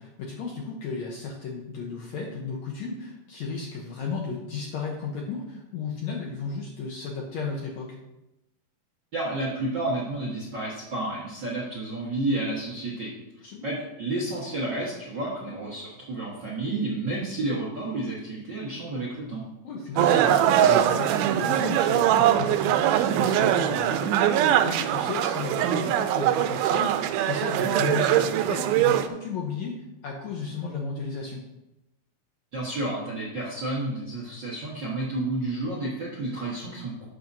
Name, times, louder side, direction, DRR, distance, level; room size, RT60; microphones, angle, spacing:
voice 1, 0.0-8.0 13.4-13.7 15.5-15.6 19.6-31.4, left 4 dB, 70° left, 0 dB, 1.7 m, -34 dB
voice 2, 9.1-13.1 13.6-19.4 32.5-37.0, right 2 dB, 55° right, -4 dB, 1.2 m, -31 dB
sound 1, 20.0-29.1, right 11 dB, 90° right, 2.5 m, -22 dB
12.5 x 7.7 x 2.7 m, 0.93 s
omnidirectional pair, 4.2 m